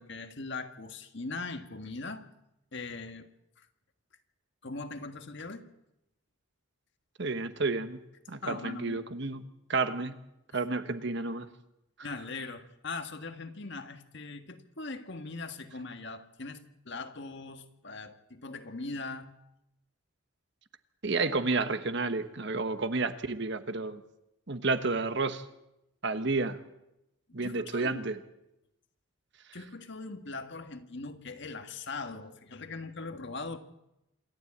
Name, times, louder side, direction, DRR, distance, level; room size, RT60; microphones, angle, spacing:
voice 1, 0.0-2.3 2.7-3.3 3.6-3.7 4.6-5.7 8.4-9.0 10.5-10.6 12.0-19.3 27.3-28.1 29.5-33.6, left 3 dB, 55° left, 7 dB, 1.6 m, -40 dB
voice 2, 7.2-8.0 8.3-9.4 9.7-10.2 10.5-11.5 21.0-24.0 24.5-25.4 26.0-26.6 27.3-28.2, right 3 dB, 55° right, 10 dB, 1.2 m, -31 dB
27.5 x 12.5 x 8.7 m, 0.89 s
head